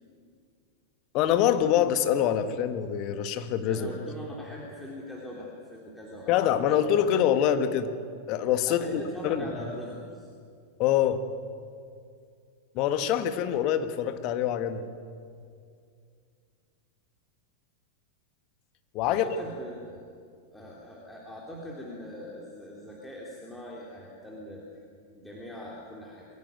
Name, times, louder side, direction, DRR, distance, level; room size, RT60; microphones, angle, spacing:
voice 1, 1.1-3.9 6.3-7.9 8.3-9.5 10.8-11.2 12.7-14.9 18.9-19.2, left 10 dB, 40° left, 9 dB, 1.5 m, -25 dB
voice 2, 3.6-6.9 8.7-10.3 19.0-20.0 20.5-24.6 25.1-26.3, equal, 5° left, -4 dB, 3.6 m, -41 dB
22.5 x 17.0 x 9.3 m, 2.3 s
figure-of-eight pair, 90°, 0 cm